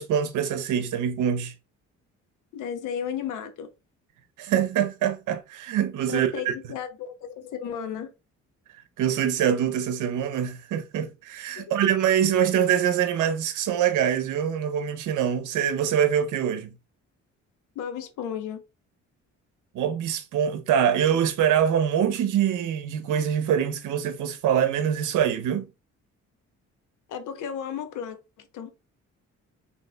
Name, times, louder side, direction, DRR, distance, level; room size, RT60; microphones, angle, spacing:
voice 1, 0.0-1.5 4.4-6.3 9.0-16.7 19.7-25.7, right 9 dB, 80° right, 0.8 m, -24 dB
voice 2, 2.5-3.7 6.1-8.1 11.6-11.7 17.7-18.6 27.1-28.7, left 8 dB, 85° left, 0.9 m, -34 dB
5.2 x 3.3 x 2.3 m
cardioid pair, 90°, 30 cm